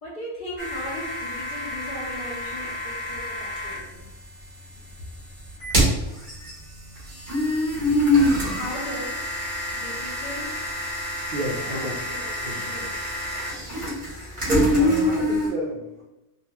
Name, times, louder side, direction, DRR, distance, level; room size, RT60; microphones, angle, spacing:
voice 1, 0.0-4.2 8.2-9.4 9.7-10.7 11.4-12.9 13.2-14.0, left 1 dB, 50° left, -5 dB, 0.7 m, -38 dB
sound 1, 0.6-3.8 5.5-15.5, left 1 dB, 35° right, 1.1 m, -26 dB
voice 2, 11.3-11.9 12.4-12.9 13.7-14.1 14.4-16.0, right 1 dB, 65° right, -5 dB, 0.5 m, -31 dB
2.4 x 2.2 x 2.8 m, 0.93 s
omnidirectional pair, 1.4 m